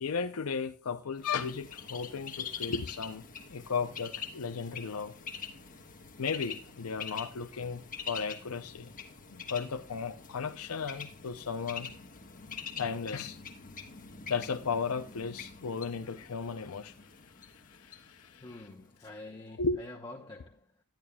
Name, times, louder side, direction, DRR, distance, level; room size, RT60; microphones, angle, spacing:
voice 1, 0.0-5.1 6.2-8.9 9.3-11.9 12.8-13.4 14.3-18.4 19.6-19.8, left 5 dB, 70° left, 0.6 m, -35 dB
Bird, 1.2-18.9, left 6 dB, 40° left, 1.2 m, -45 dB
voice 2, 18.4-20.8, left 2 dB, 20° left, 0.9 m, -47 dB
11.0 x 10.5 x 2.3 m
head